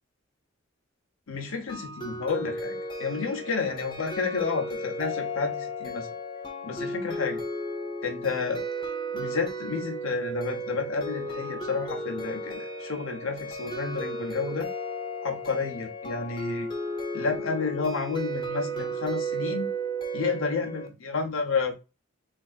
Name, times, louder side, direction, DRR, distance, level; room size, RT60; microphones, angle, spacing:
voice 1, 1.3-6.1 6.6-7.4 8.0-14.7 15.2-16.7 17.1-19.7 20.1-21.7, left 4 dB, 70° left, 0.9 m, -31 dB
sound 1, 1.7-20.9, right 1 dB, 20° left, 0.6 m, -34 dB
3.5 x 3.4 x 2.4 m
head